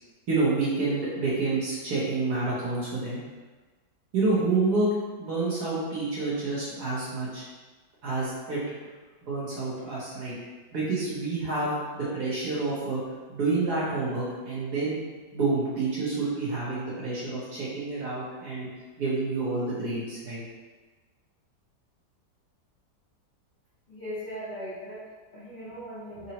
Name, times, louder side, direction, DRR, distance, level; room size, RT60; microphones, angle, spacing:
voice 1, 0.3-3.2 4.1-4.9 5.2-7.4 8.0-8.6 9.2-10.3 10.7-13.0 13.3-15.0 15.3-18.7 19.0-20.4 24.8-24.9, right 3 dB, 65° right, -8 dB, 1.2 m, -28 dB
voice 2, 23.9-26.3, equal, 55° left, -12 dB, 0.5 m, -39 dB
3.7 x 2.0 x 2.8 m, 1.3 s
omnidirectional pair, 2.0 m